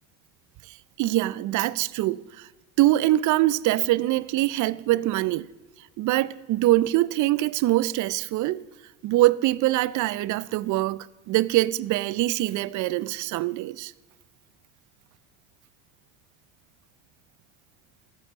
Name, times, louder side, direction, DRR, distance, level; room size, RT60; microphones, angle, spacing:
voice 1, 1.0-2.5 2.8-5.5 6.0-8.6 9.0-13.9, right 16 dB, 50° right, 0.6 m, -23 dB
14.0 x 7.7 x 6.9 m
supercardioid pair, 100°, 40 cm